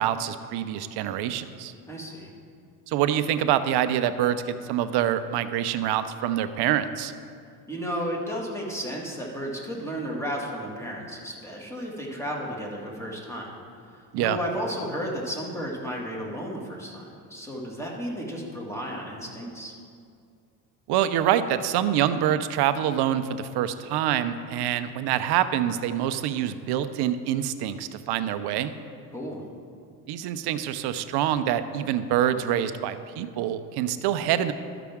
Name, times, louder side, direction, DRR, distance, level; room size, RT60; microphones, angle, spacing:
voice 1, 0.0-1.7 2.9-7.1 14.1-14.4 20.9-28.7 30.1-34.5, right 10 dB, 55° right, 11 dB, 0.6 m, -26 dB
voice 2, 1.9-2.3 7.7-13.5 13.9-19.7 29.1-29.4, equal, 5° left, -2 dB, 2.0 m, -33 dB
13.0 x 5.9 x 3.6 m, 2.3 s
supercardioid pair, 85°, 46 cm